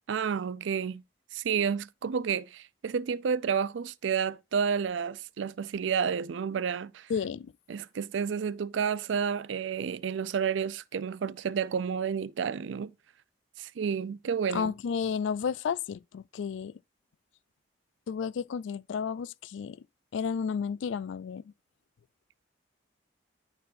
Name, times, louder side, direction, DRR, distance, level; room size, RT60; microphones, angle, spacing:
voice 1, 0.1-1.0 1.3-7.1 7.7-12.9 13.6-14.7, right 7 dB, 80° right, 0.4 m, -30 dB
voice 2, 7.1-7.5 14.5-16.8 18.1-19.8 20.1-21.5, left 6 dB, 80° left, 0.3 m, -32 dB
11.0 x 4.5 x 2.5 m
head